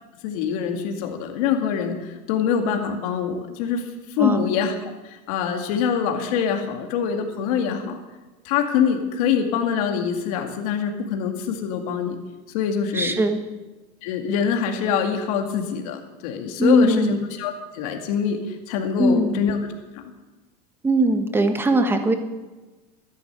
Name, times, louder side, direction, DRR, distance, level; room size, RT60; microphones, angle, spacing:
voice 1, 0.2-3.8 4.2-4.8 5.0-8.0 8.4-12.2 12.5-13.1 14.0-19.6 19.9-20.0, left 7 dB, 70° left, 3 dB, 2.2 m, -24 dB
voice 2, 12.9-13.4 16.6-17.2 19.0-19.4 20.8-22.1, right 1 dB, 10° right, 7 dB, 1.3 m, -20 dB
13.0 x 10.5 x 8.0 m, 1.2 s
supercardioid pair, 145°, 19 cm